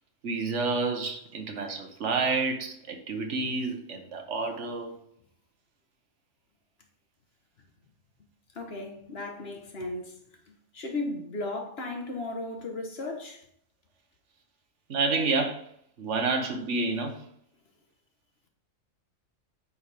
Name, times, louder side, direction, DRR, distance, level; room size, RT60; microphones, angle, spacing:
voice 1, 0.2-4.9 14.9-15.7 16.0-17.2, right 3 dB, 65° right, 1.4 m, -29 dB
voice 2, 8.5-10.1 10.7-13.4, left 2 dB, 50° left, 1.5 m, -35 dB
9.6 x 5.6 x 3.5 m
omnidirectional pair, 1.3 m